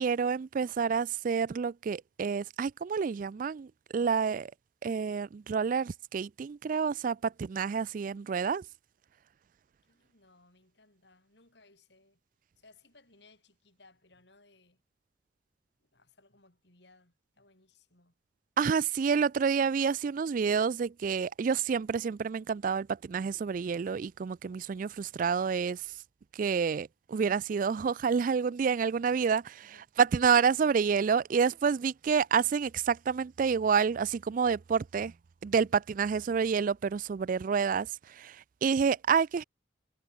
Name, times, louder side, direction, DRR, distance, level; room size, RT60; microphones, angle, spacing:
voice 1, 0.0-4.5 4.8-8.6 18.6-25.8 26.3-29.7 30.0-35.1 35.4-39.4, right 6 dB, 45° right, 0.3 m, -28 dB
voice 2, 9.8-12.2 12.6-14.8 15.8-18.2 29.6-29.9, left 3 dB, 65° left, 6.6 m, -63 dB
head